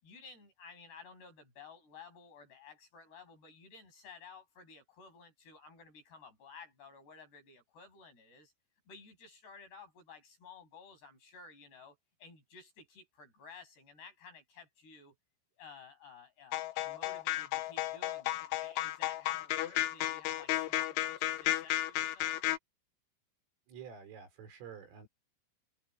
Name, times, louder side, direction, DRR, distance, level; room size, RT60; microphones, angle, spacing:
voice 1, 0.0-8.5 8.9-15.1 15.6-22.4, left 5 dB, 50° left, 9.7 m, -54 dB
sound 1, 16.5-22.6, left 14 dB, 75° left, 3.4 m, -33 dB
voice 2, 23.7-25.1, right 7 dB, 75° right, 7.9 m, -49 dB
omnidirectional pair, 5.9 m